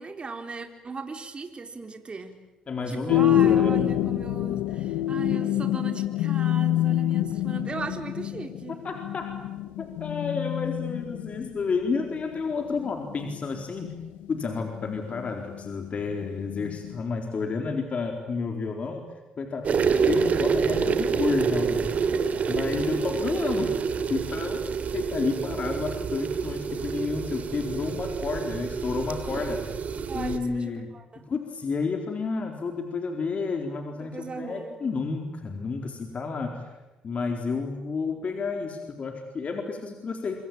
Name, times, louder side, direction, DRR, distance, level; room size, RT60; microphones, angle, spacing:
voice 1, 0.0-2.4 2.9-8.9 22.8-23.0 30.1-31.2 33.9-34.8, right 4 dB, 35° right, 6 dB, 4.1 m, -37 dB
voice 2, 2.7-3.8 8.7-9.3 9.8-14.0 14.3-19.1 19.4-22.0 22.5-23.8 24.1-24.6 24.9-29.6 30.1-30.9 31.2-36.7 37.0-40.4, left 4 dB, 50° left, 4 dB, 4.1 m, -31 dB
sound 1, 3.1-17.0, left 12 dB, 85° left, 1.0 m, -27 dB
sound 2, 19.6-30.4, right 6 dB, 55° right, 2.9 m, -27 dB
27.0 x 25.0 x 9.0 m, 1.1 s
supercardioid pair, 60°, 3 cm